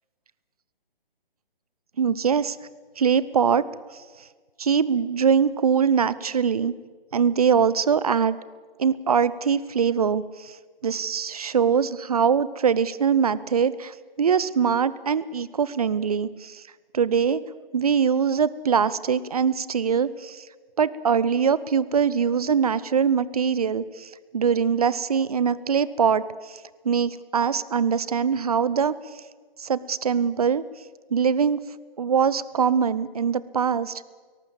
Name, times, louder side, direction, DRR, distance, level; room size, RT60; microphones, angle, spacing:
voice 1, 2.0-2.6 3.0-3.6 3.9-4.0 4.6-6.7 7.1-8.4 8.8-10.6 10.8-16.6 16.9-17.4 17.7-20.5 20.8-29.0 29.6-30.6 31.1-31.6 32.0-34.0, right 7 dB, 40° right, 18 dB, 0.8 m, -23 dB
23.5 x 18.5 x 7.2 m, 1.5 s
figure-of-eight pair, 140°, 29 cm